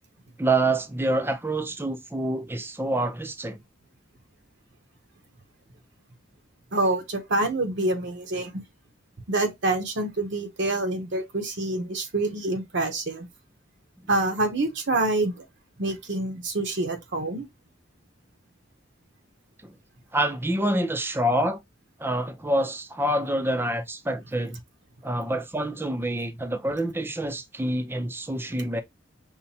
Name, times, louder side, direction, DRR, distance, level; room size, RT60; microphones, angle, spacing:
voice 1, 0.4-3.6 19.6-19.7 20.1-21.6 22.0-24.6 25.0-28.8, right 1 dB, 10° right, 0.5 m, -27 dB
voice 2, 6.7-8.5 9.3-13.3 14.1-15.4 15.8-17.5, right 2 dB, 65° right, 0.9 m, -26 dB
5.6 x 2.1 x 2.7 m
head